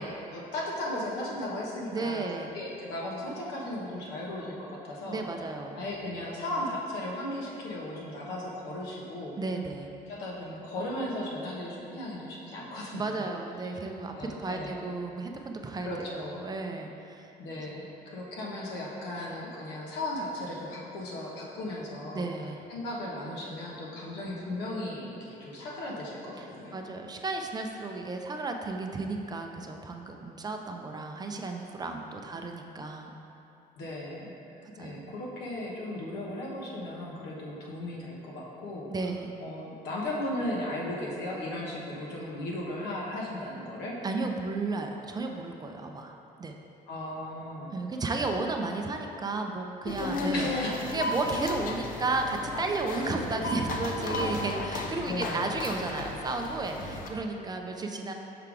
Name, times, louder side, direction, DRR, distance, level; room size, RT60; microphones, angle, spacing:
voice 1, 0.0-2.2 2.5-5.2 5.7-9.4 10.1-13.3 14.0-14.8 15.8-16.5 17.4-22.3 22.7-26.8 33.8-34.4 34.8-38.9 39.4-44.0 46.9-47.7 50.3-50.8 55.1-55.4, left 1 dB, 90° left, -3 dB, 1.1 m, -36 dB
voice 2, 1.9-2.6 5.1-5.8 9.4-9.9 12.9-17.6 22.1-22.6 26.4-33.1 34.8-35.1 38.9-39.3 44.0-46.5 47.7-50.5 50.9-58.1, right 3 dB, 25° right, 3 dB, 0.4 m, -33 dB
sound 1, 49.8-57.1, left 2 dB, 55° left, 0.6 m, -34 dB
5.7 x 3.7 x 4.6 m, 2.8 s
cardioid pair, 110°, 17 cm